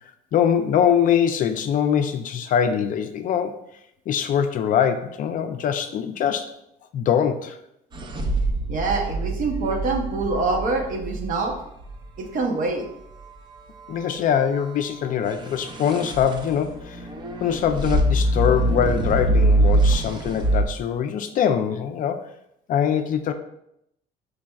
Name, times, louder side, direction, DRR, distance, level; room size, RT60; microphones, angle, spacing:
voice 1, 0.3-3.6 4.1-6.6 6.9-7.6 13.9-17.1 17.4-22.3 22.7-23.3, left 8 dB, 55° left, 8 dB, 0.4 m, -23 dB
sound 1, 7.9-12.0 15.3-20.6, right 1 dB, 25° right, 0.5 m, -24 dB
voice 2, 8.7-11.5 12.2-12.9, right 3 dB, 50° right, 2 dB, 0.8 m, -25 dB
5.1 x 3.3 x 2.3 m, 0.78 s
cardioid pair, 110°, 17 cm